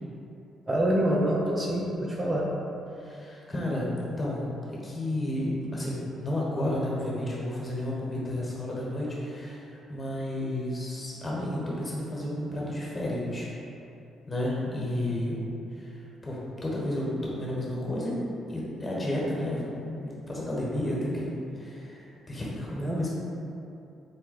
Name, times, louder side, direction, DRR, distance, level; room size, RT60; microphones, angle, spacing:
voice 1, 0.7-2.5 22.8-23.0, right 1 dB, 25° right, -3 dB, 0.4 m, -26 dB
voice 2, 2.9-4.5 4.8-13.5 14.3-15.4 15.7-15.9 16.2-18.1 18.5-23.2, left 1 dB, 25° left, -5 dB, 1.1 m, -32 dB
4.1 x 2.1 x 4.0 m, 2.8 s
cardioid pair, 80°, 0 cm